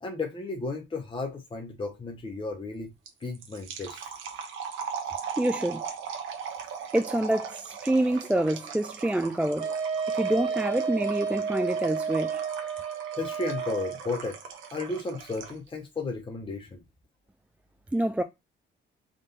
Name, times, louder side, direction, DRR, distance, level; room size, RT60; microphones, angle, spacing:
voice 1, 0.0-2.9 3.2-4.1 13.1-14.4 14.7-16.8, left 3 dB, 25° left, 0.8 m, -34 dB
sound 1, 3.1-15.7, right 7 dB, 75° right, 0.9 m, -39 dB
voice 2, 5.4-5.8 6.9-9.7 10.1-12.4 17.9-18.2, right 1 dB, 5° right, 0.3 m, -27 dB
Wind instrument woodwind instrument, 9.6-14.0, right 6 dB, 60° right, 1.7 m, -31 dB
3.7 x 2.6 x 3.8 m
cardioid pair, 90°, 20 cm